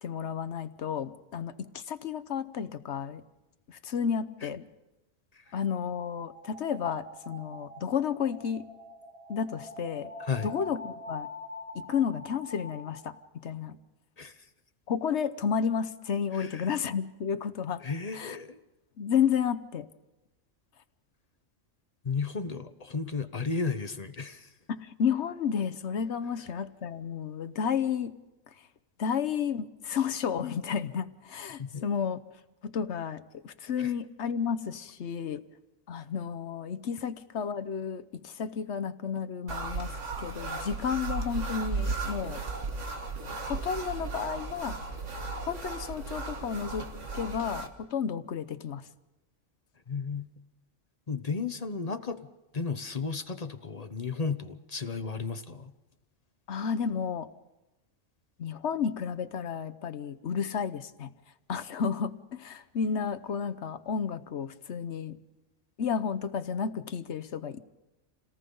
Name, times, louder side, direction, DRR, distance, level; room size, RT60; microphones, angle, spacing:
voice 1, 0.0-3.2 3.7-4.7 5.5-8.7 9.3-10.1 10.4-11.3 11.7-13.2 13.4-13.8 14.9-17.8 18.1-18.4 19.0-19.9 24.7-28.2 29.0-32.2 32.6-35.4 35.9-42.4 43.3-44.8 45.5-48.9 56.5-57.3 58.4-61.1 61.5-65.2 65.8-67.6, left 7 dB, 60° left, 11 dB, 1.1 m, -32 dB
sound 1, 5.5-13.3, left 2 dB, 25° right, 1.7 m, -45 dB
voice 2, 10.2-10.5 14.2-14.5 16.3-16.7 17.8-18.6 22.0-24.5 31.6-31.9 33.8-33.9 49.9-50.3 51.1-52.3 52.5-55.7, left 4 dB, 35° left, 9 dB, 0.9 m, -34 dB
sound 2, 39.5-47.7, right 3 dB, 65° right, 1.9 m, -35 dB
28.5 x 18.5 x 5.4 m, 1.0 s
omnidirectional pair, 1.4 m